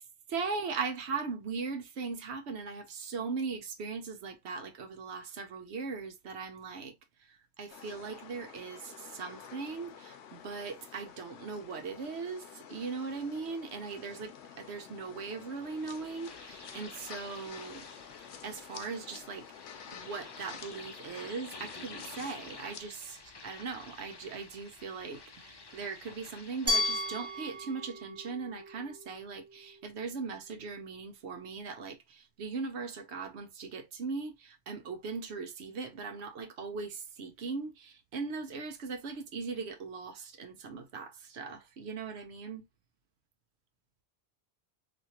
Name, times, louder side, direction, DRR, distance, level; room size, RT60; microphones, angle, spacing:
voice 1, 0.3-17.9 18.4-19.5 19.9-42.6, right 4 dB, 75° right, 0.9 m, -39 dB
sound 1, 7.7-22.8, left 8 dB, 85° left, 0.9 m, -50 dB
sound 2, 15.5-27.7, left 4 dB, 35° left, 0.4 m, -51 dB
Glass, 26.7-29.6, left 1 dB, 15° right, 1.1 m, -34 dB
3.1 x 2.6 x 2.7 m
omnidirectional pair, 1.1 m